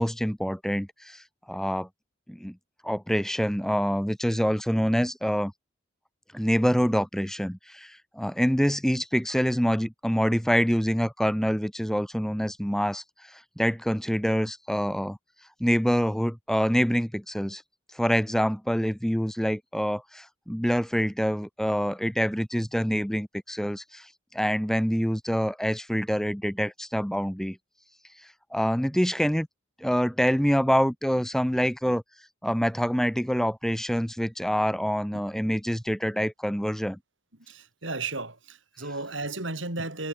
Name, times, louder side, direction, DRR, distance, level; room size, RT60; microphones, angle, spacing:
voice 1, 0.0-1.9 2.3-2.5 2.8-5.5 6.3-15.2 15.6-17.6 17.9-24.1 24.3-27.6 28.5-29.5 29.8-32.0 32.4-37.0, equal, ahead, 2.8 m, -26 dB
voice 2, 37.5-40.1, right 3 dB, 75° right, 6.3 m, -34 dB
head